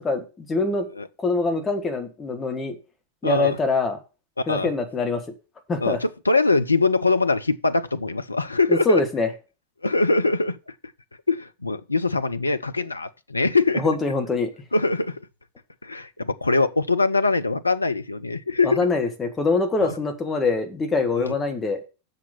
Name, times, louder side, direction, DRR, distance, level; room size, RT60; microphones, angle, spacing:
voice 1, 0.0-0.9 1.2-2.8 3.2-4.0 4.5-5.2 5.7-6.0 8.7-9.3 13.7-14.5 18.6-21.8, left 3 dB, 15° left, 2.0 m, -24 dB
voice 2, 3.2-3.6 4.5-4.7 5.8-9.0 9.8-10.6 11.3-13.9 14.7-15.2 15.8-18.8 19.8-19.9 21.1-21.4, left 3 dB, 80° left, 0.5 m, -22 dB
7.1 x 6.7 x 7.2 m
figure-of-eight pair, 90°, 0 cm